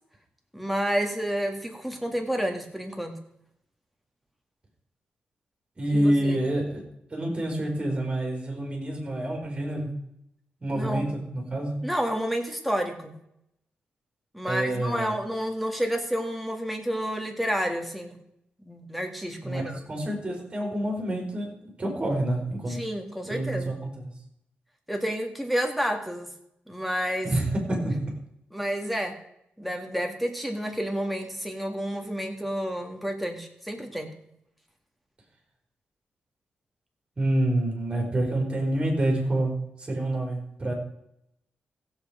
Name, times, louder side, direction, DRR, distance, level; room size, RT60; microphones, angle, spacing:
voice 1, 0.5-3.2 5.9-6.4 10.7-11.1 11.8-13.1 14.3-18.2 18.7-19.9 22.7-23.8 24.9-26.3 26.7-27.3 28.5-29.2 29.6-34.1, equal, ahead, 3 dB, 2.0 m, -30 dB
voice 2, 5.8-6.8 7.1-9.9 10.6-11.8 14.4-15.1 19.4-21.5 21.8-22.8 23.2-24.1 27.2-28.1 37.2-39.5 39.8-40.7, right 1 dB, 25° right, 1 dB, 4.6 m, -27 dB
15.5 x 8.1 x 5.1 m, 0.76 s
wide cardioid pair, 115°, 4 cm